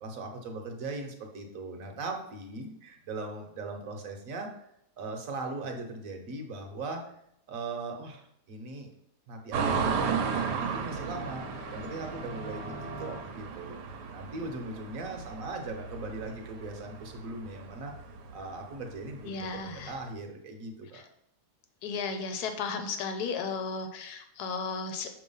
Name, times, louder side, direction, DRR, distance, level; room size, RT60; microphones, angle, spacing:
voice 1, 0.0-4.5 5.0-7.0 7.5-8.9 9.3-11.5 11.7-13.8 14.1-17.9 18.3-21.0, right 2 dB, 60° right, 3 dB, 1.3 m, -39 dB
sound 1, 9.5-20.1, right 6 dB, 80° right, 1.4 m, -35 dB
sound 2, 10.6-13.2, equal, 5° left, 0.9 m, -44 dB
voice 2, 19.2-19.9 20.9-21.0 21.8-25.1, left 4 dB, 75° left, 6 dB, 1.3 m, -34 dB
6.1 x 3.1 x 5.4 m, 0.74 s
omnidirectional pair, 1.7 m